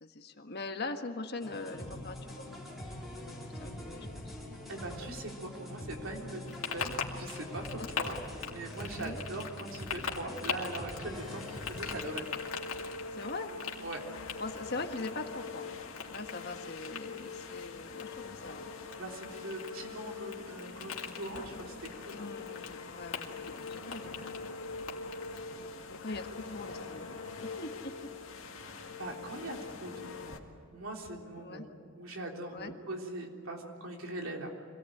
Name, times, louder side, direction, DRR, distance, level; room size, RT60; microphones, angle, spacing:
voice 1, 0.0-2.6 3.1-4.4 6.2-6.4 7.8-7.9 9.0-9.2 13.2-13.5 14.4-15.7 16.1-18.7 22.1-24.4 25.5-27.1 27.4-28.1 31.4-31.7 32.5-32.7, left 3 dB, 50° left, 6 dB, 1.5 m, -42 dB
sound 1, 1.4-12.0, left 1 dB, ahead, 4.5 m, -44 dB
voice 2, 4.7-8.2 8.5-12.2 13.8-14.1 19.0-22.2 25.4-25.5 28.6-31.7 32.0-34.5, right 2 dB, 70° right, 1 dB, 3.6 m, -41 dB
sound 2, 6.5-25.5, left 6 dB, 90° left, 2.5 m, -43 dB
sound 3, 11.1-30.4, left 4 dB, 70° left, 2.1 m, -44 dB
25.5 x 18.0 x 9.1 m, 2.5 s
head